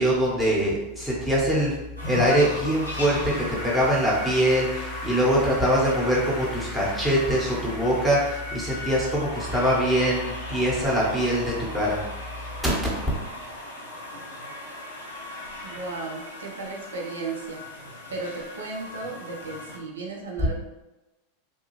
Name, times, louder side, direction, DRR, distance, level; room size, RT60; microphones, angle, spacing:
voice 1, 0.0-1.7 2.0-12.0 12.6-12.7, equal, 10° right, -6 dB, 1.1 m, -23 dB
sound 1, 2.0-19.8, left 1 dB, 90° left, 0.6 m, -38 dB
Applause / Keyboard (musical), 2.3-11.6, left 1 dB, 35° left, 0.7 m, -41 dB
voice 2, 15.6-17.6 18.1-20.5, right 3 dB, 75° right, -1 dB, 0.5 m, -35 dB
2.6 x 2.3 x 3.0 m, 1.0 s
figure-of-eight pair, 90°, 0 cm